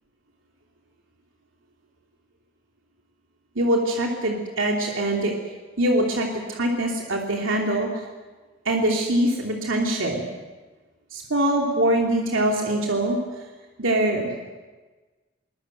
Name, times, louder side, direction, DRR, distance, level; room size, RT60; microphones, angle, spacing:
voice 1, 3.5-5.3 5.8-7.9 8.6-10.2 11.1-13.2 13.8-14.3, right 1 dB, 90° right, 0 dB, 2.9 m, -23 dB
22.0 x 20.5 x 7.8 m, 1.3 s
head